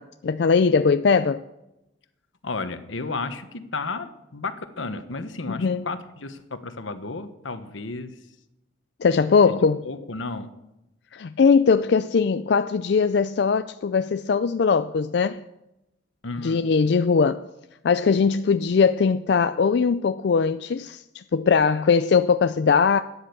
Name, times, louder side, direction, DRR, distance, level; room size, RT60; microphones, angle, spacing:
voice 1, 0.0-1.4 5.5-5.8 9.0-9.8 11.1-15.4 16.4-17.5 17.8-23.0, left 5 dB, 60° left, 0.4 m, -20 dB
voice 2, 2.4-8.1 9.8-10.5 16.2-16.6, left 3 dB, 85° left, 1.2 m, -33 dB
13.5 x 10.0 x 6.8 m
head